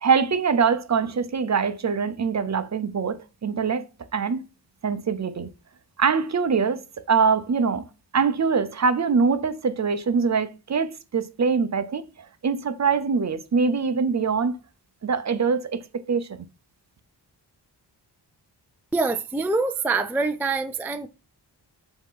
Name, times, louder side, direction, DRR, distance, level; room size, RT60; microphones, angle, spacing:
voice 1, 0.0-3.9 4.1-4.5 4.8-5.5 6.0-7.8 8.1-14.6 15.0-16.3, right 5 dB, 40° right, 0.6 m, -23 dB
voice 2, 18.9-21.1, right 3 dB, 5° right, 0.3 m, -25 dB
7.5 x 2.9 x 5.5 m
wide cardioid pair, 170°, 42 cm